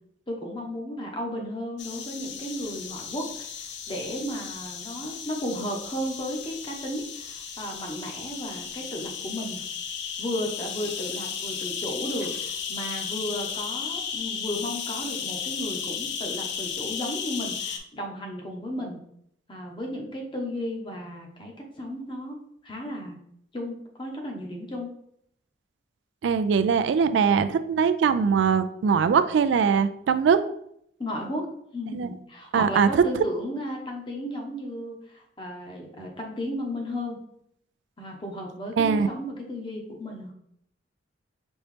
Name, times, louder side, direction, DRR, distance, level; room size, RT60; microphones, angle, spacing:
voice 1, 0.3-9.6 10.2-19.0 19.5-23.2 23.5-24.9 31.0-37.2 38.0-40.3, equal, 25° left, 1 dB, 0.8 m, -34 dB
sound 1, 1.8-17.8, left 7 dB, 60° left, 0.5 m, -35 dB
voice 2, 26.2-30.4 31.9-32.1 32.5-32.9 38.8-39.1, right 6 dB, 70° right, 12 dB, 0.3 m, -21 dB
5.3 x 3.0 x 3.2 m, 0.72 s
head